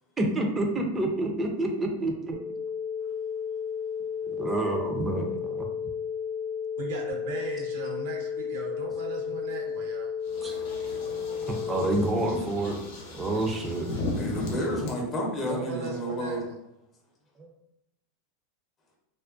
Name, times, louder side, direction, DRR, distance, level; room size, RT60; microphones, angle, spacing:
voice 1, 0.2-2.3 4.3-5.7 10.4-10.5 11.5-12.8 13.1-13.9 17.4-17.5, right 2 dB, 20° right, 2 dB, 0.4 m, -28 dB
sound 1, 2.3-12.3, left 7 dB, 90° right, 0.9 m, -33 dB
voice 2, 6.8-10.1 10.5-10.6 15.5-16.5, right 4 dB, 70° right, 1 dB, 0.6 m, -38 dB
sound 2, 10.2-14.9, left 2 dB, 65° left, 0.6 m, -36 dB
voice 3, 14.2-16.4, equal, 30° left, -1 dB, 0.7 m, -31 dB
2.4 x 2.1 x 2.4 m, 0.86 s
hypercardioid pair, 115°, 0 cm